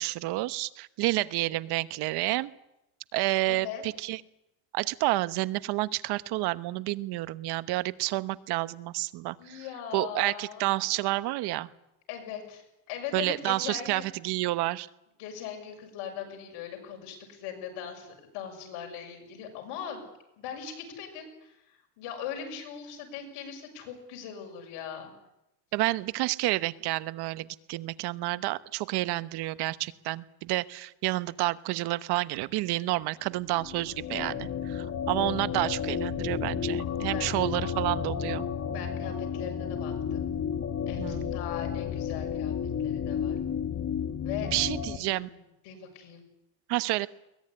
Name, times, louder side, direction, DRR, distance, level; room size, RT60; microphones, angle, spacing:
voice 1, 0.0-2.5 3.1-4.2 4.7-9.6 9.9-11.7 13.1-14.9 25.7-38.4 41.0-41.4 44.4-45.3 46.7-47.1, right 18 dB, 75° right, 15 dB, 1.1 m, -30 dB
voice 2, 3.5-3.8 9.4-10.7 12.1-14.1 15.2-20.1 20.4-21.6 22.0-25.1 37.1-37.3 38.7-40.3 40.9-42.5 42.8-43.4 44.2-44.5 44.9-45.4 45.6-46.3, left 8 dB, 85° left, 4 dB, 6.9 m, -40 dB
sound 1, 33.4-45.0, left 7 dB, 40° left, 2.0 m, -32 dB
22.0 x 19.5 x 9.9 m, 0.90 s
cardioid pair, 105°, 39 cm